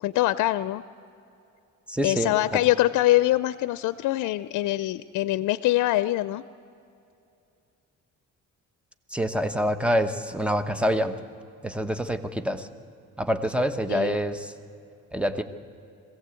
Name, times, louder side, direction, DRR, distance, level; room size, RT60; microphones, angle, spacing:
voice 1, 0.0-0.8 2.0-6.4 13.9-14.2, left 16 dB, 80° left, 15 dB, 0.5 m, -24 dB
voice 2, 1.9-2.3 9.1-11.2 11.6-12.7 13.2-14.5 15.1-15.4, equal, 5° right, 10 dB, 1.1 m, -26 dB
21.5 x 15.5 x 8.4 m, 2.7 s
cardioid pair, 90°, 30 cm